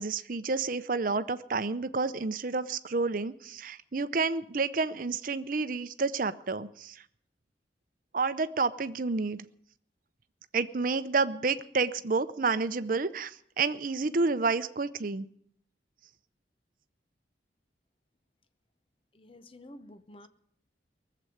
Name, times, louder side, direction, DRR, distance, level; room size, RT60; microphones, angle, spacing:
voice 1, 0.0-7.0 8.1-9.4 10.5-15.3, right 4 dB, 50° right, 12 dB, 0.7 m, -30 dB
voice 2, 19.1-20.3, left 1 dB, 30° left, 11 dB, 0.7 m, -50 dB
19.5 x 7.7 x 9.2 m, 0.68 s
head